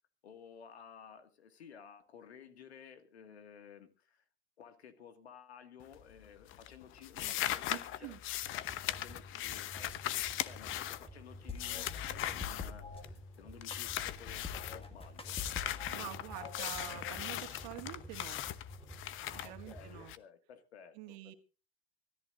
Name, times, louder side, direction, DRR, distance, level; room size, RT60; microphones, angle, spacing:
voice 1, 0.2-4.2 4.6-8.2 8.5-15.4 19.2-21.3, left 7 dB, 80° left, 9 dB, 2.1 m, -55 dB
sound 1, 5.8-6.2 6.5-13.2 13.6-14.8 15.2-20.2, left 13 dB, 40° left, 1.0 m, -39 dB
voice 2, 7.7-8.2 15.9-18.4 19.3-20.1 20.9-21.3, right 17 dB, 50° right, 7 dB, 2.2 m, -47 dB
sound 2, 8.4-20.1, right 1 dB, ahead, 4.5 m, -52 dB
sound 3, 11.5-13.0 13.7-16.0 16.3-17.3, left 5 dB, 15° left, 2.0 m, -45 dB
24.5 x 14.0 x 2.6 m, 0.33 s
hypercardioid pair, 100°, 32 cm